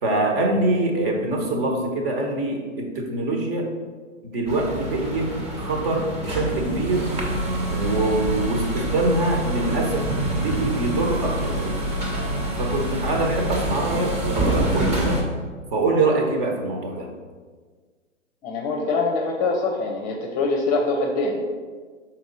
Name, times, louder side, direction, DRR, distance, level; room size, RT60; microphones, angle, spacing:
voice 1, 0.0-3.7 4.2-7.1 7.7-10.1 10.3-12.0 12.6-15.2 15.7-17.1, right 2 dB, 45° right, 2 dB, 1.4 m, -24 dB
sound 1, 4.5-15.2, right 1 dB, 15° right, 1.1 m, -26 dB
voice 2, 18.4-21.4, left 3 dB, 20° left, 2 dB, 0.7 m, -24 dB
5.9 x 4.4 x 4.1 m, 1.5 s
hypercardioid pair, 125°, 38 cm